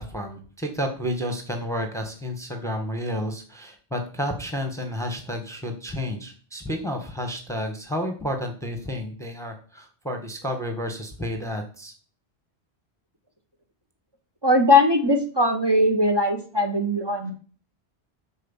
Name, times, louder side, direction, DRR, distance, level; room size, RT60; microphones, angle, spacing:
voice 1, 0.0-11.9, equal, 5° left, 4 dB, 1.5 m, -31 dB
voice 2, 14.4-17.3, left 1 dB, 25° right, 4 dB, 1.4 m, -20 dB
11.0 x 4.7 x 7.3 m, 0.42 s
omnidirectional pair, 1.1 m